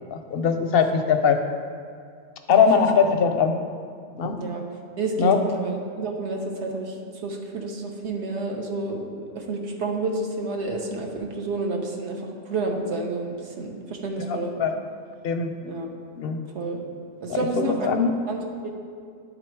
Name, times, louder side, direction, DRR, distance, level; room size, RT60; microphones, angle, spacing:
voice 1, 0.0-1.4 2.5-3.5 4.2-4.4 5.2-5.4 14.2-14.8 15.2-15.5 16.2-16.4 17.3-17.5 17.8-18.1, left 6 dB, 60° left, 6 dB, 0.6 m, -21 dB
voice 2, 2.5-2.9 4.4-4.6 5.0-7.0 7.2-12.2 12.5-14.5 15.6-15.9 16.5-16.8 17.2-17.9 18.3-18.7, right 3 dB, 65° right, 1 dB, 1.1 m, -29 dB
10.0 x 3.9 x 4.5 m, 2.2 s
omnidirectional pair, 1.3 m